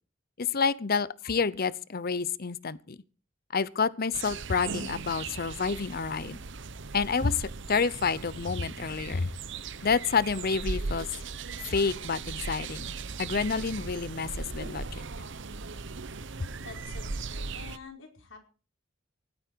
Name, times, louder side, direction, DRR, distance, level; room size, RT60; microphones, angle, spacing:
voice 1, 0.4-3.0 3.5-6.4 6.9-9.3 9.8-11.1 11.7-12.9 13.2-15.0, left 5 dB, 50° left, 0.8 m, -29 dB
sound 1, 4.1-17.8, right 4 dB, 65° right, 0.9 m, -38 dB
voice 2, 16.6-18.4, left 4 dB, 85° left, 4.7 m, -47 dB
17.5 x 13.0 x 4.6 m
head